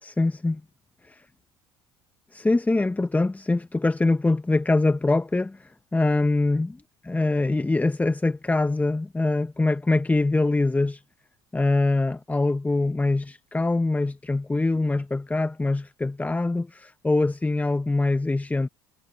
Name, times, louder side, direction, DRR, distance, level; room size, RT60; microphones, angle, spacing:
voice 1, 0.0-0.6 1.0-1.2 2.3-11.0 11.5-18.7, left 2 dB, 10° left, 1.0 m, -24 dB
hypercardioid pair, 70°, 13 cm